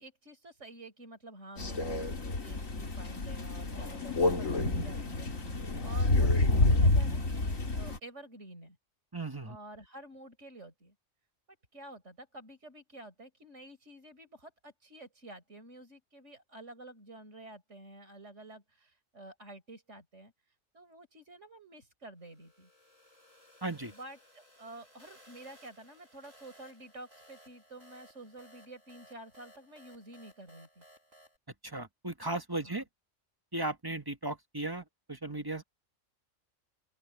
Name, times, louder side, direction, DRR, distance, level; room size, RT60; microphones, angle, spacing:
voice 1, 0.0-8.8 9.4-10.9 11.7-20.3 20.7-22.7 23.8-30.8 32.6-32.8, right 1 dB, 65° right, 5.8 m, -50 dB
Crow, 1.6-8.0, left 2 dB, 90° left, 3.2 m, -28 dB
voice 2, 9.1-9.6 23.6-23.9 31.6-32.8 33.5-35.6, right 2 dB, 20° right, 1.5 m, -36 dB
sound 1, 22.3-31.4, equal, 80° right, 7.4 m, -60 dB
open air
omnidirectional pair, 1.3 m